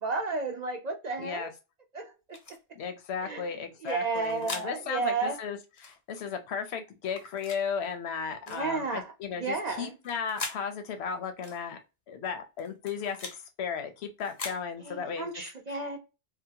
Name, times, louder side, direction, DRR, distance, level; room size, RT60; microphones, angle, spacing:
voice 1, 0.0-1.5 1.9-2.1 3.2-3.6 3.8-5.4 8.5-9.1 9.4-10.0 14.8-16.0, right 4 dB, 50° right, 0.6 m, -32 dB
voice 2, 1.2-1.5 2.7-11.8 12.1-15.3 15.7-16.0, left 6 dB, 80° left, 0.9 m, -35 dB
sound 1, 2.3-2.6 3.9-4.7 5.8-6.0 7.1-7.6 8.5-8.7 9.9-10.6 11.4-11.6 12.6-13.4 14.2-14.6, left 3 dB, 45° left, 0.6 m, -40 dB
2.8 x 2.1 x 2.7 m
omnidirectional pair, 1.1 m